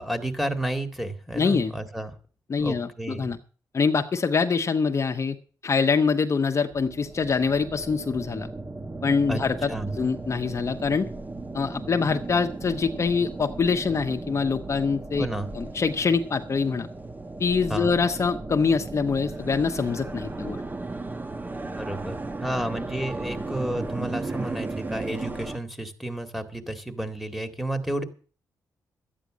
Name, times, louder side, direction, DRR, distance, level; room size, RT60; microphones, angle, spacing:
voice 1, 0.0-2.1 2.6-3.3 9.3-9.4 9.7-9.9 15.2-15.5 17.7-17.9 21.7-22.2 22.4-28.0, right 1 dB, 5° right, 5 dB, 2.0 m, -31 dB
voice 2, 1.3-1.7 2.5-3.4 3.7-5.4 5.6-8.5 9.0-11.1 11.5-15.3 15.5-16.9 17.4-20.6, left 5 dB, 40° left, 5 dB, 1.0 m, -24 dB
sound 1, 6.6-25.6, right 2 dB, 25° right, 1.1 m, -36 dB
12.5 x 9.3 x 6.2 m, 0.40 s
cardioid pair, 90°, 7 cm